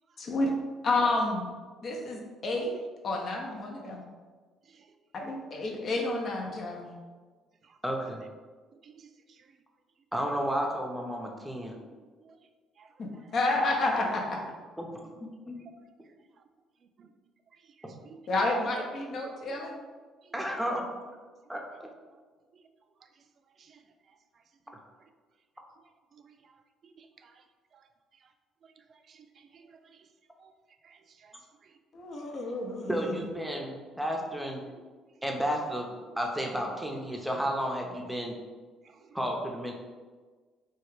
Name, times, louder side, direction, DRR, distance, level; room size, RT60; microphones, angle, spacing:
voice 1, 0.2-0.5 0.8-1.5 1.8-2.7 3.0-4.1 5.1-6.9 13.0-14.4 18.3-19.7 31.9-33.2, left 2 dB, 55° left, 1 dB, 0.6 m, -30 dB
voice 2, 7.8-8.2 10.1-11.8 14.8-14.9 15.2-15.6 17.8-18.0 20.3-20.8 21.5-21.9 32.9-34.6 35.2-35.9 36.2-38.3 39.1-39.7, equal, 5° right, 0 dB, 0.6 m, -32 dB
voice 3, 8.8-9.5 12.2-12.4 12.8-12.9 17.0-17.1 17.5-18.2 20.2-20.4 20.7-20.9 22.5-22.6 23.6-23.8 24.7-24.8 26.1-26.5 26.8-27.4 27.7-27.8 28.6-30.1 30.4-30.5 30.8-31.3 31.6-31.8 38.8-39.1, right 6 dB, 50° right, 7 dB, 0.3 m, -57 dB
3.1 x 2.3 x 3.2 m, 1.4 s
hypercardioid pair, 60°, 0 cm